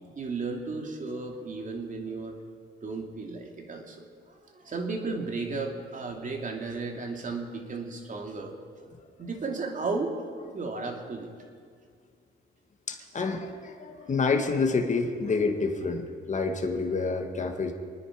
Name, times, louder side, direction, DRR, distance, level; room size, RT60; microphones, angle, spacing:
voice 1, 0.1-2.4 2.8-8.6 9.2-10.1 10.4-11.3, right 3 dB, 40° right, 2 dB, 2.8 m, -34 dB
voice 2, 12.9-17.7, left 4 dB, 35° left, 4 dB, 1.9 m, -28 dB
27.5 x 9.8 x 5.1 m, 2.1 s
cardioid pair, 95°, 21 cm